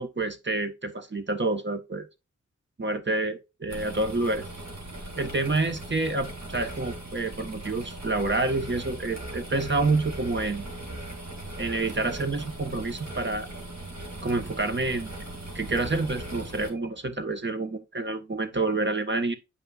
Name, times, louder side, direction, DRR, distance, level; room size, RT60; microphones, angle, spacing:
voice 1, 0.0-2.0 2.8-4.5 5.2-10.7 11.6-13.5 14.2-15.1 15.5-19.3, right 2 dB, 40° right, 1.2 m, -28 dB
sound 1, 3.7-16.7, right 1 dB, 65° right, 2.4 m, -39 dB
8.4 x 5.4 x 2.4 m
cardioid pair, 45°, 30 cm